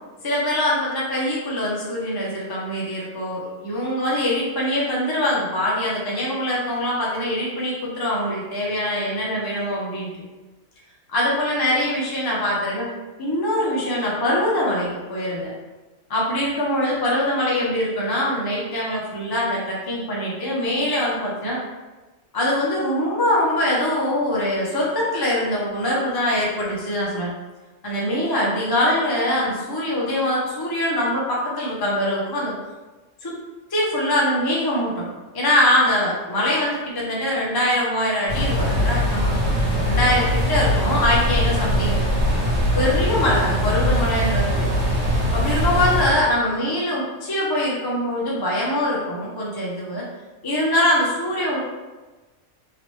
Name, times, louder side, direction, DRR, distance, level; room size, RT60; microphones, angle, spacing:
voice 1, 0.2-10.1 11.1-12.9 13.2-15.5 16.1-21.6 22.3-27.3 27.8-32.5 33.2-33.3 33.7-35.0 35.3-39.3 39.8-42.1 42.7-44.7 45.3-50.0 50.4-51.6, left 1 dB, 35° left, -5 dB, 0.3 m, -23 dB
sound 1, 38.3-46.1, equal, 70° right, 1.4 m, -21 dB
2.9 x 2.9 x 3.0 m, 1.2 s
omnidirectional pair, 1.3 m